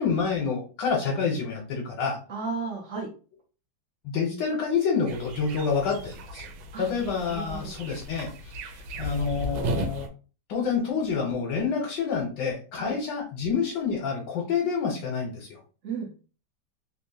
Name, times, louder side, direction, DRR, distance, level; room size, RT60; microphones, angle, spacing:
voice 1, 0.0-2.2 4.0-6.5 6.8-8.3 9.0-10.1 10.5-15.6, left 5 dB, 70° left, 0 dB, 1.5 m, -28 dB
voice 2, 2.3-3.1 6.7-6.9 7.2-7.8 12.7-13.0 15.8-16.1, right 4 dB, 60° right, -2 dB, 0.7 m, -34 dB
sound 1, 5.1-10.1, right 1 dB, 90° right, 1.4 m, -35 dB
3.5 x 2.7 x 2.7 m, 0.37 s
omnidirectional pair, 2.2 m